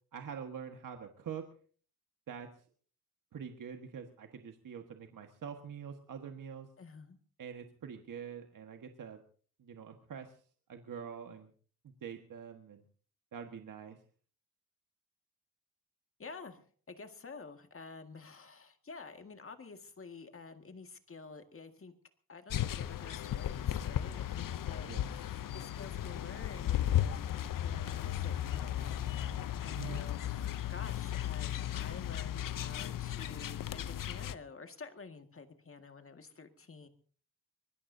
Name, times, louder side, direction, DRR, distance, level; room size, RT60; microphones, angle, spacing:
voice 1, 0.1-1.4 2.3-2.5 3.3-6.7 7.4-9.2 9.6-10.4 10.7-11.5 11.8-12.8 13.3-14.0 24.9-25.1 29.8-30.0, right 7 dB, 65° right, 5 dB, 1.6 m, -45 dB
voice 2, 6.8-7.2 16.2-21.9 22.3-36.9, left 4 dB, 40° left, 7 dB, 1.9 m, -50 dB
sound 1, 22.5-34.4, left 11 dB, 65° left, 0.7 m, -35 dB
24.5 x 20.0 x 2.7 m, 0.43 s
cardioid pair, 100°, 35 cm